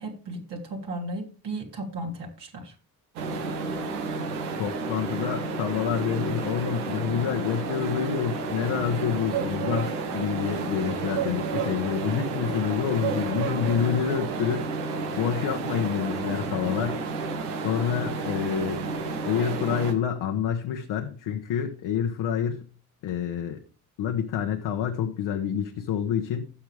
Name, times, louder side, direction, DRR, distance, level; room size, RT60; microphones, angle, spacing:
voice 1, 0.0-2.7, right 1 dB, 60° right, 0 dB, 3.2 m, -35 dB
sound 1, 3.2-19.9, right 4 dB, 90° right, 1.2 m, -31 dB
voice 2, 4.6-14.7 15.1-17.4 17.6-18.9 19.2-22.6 23.0-23.6 24.0-26.5, left 8 dB, 70° left, 4 dB, 1.2 m, -28 dB
15.5 x 5.9 x 3.4 m, 0.36 s
hypercardioid pair, 45°, 45 cm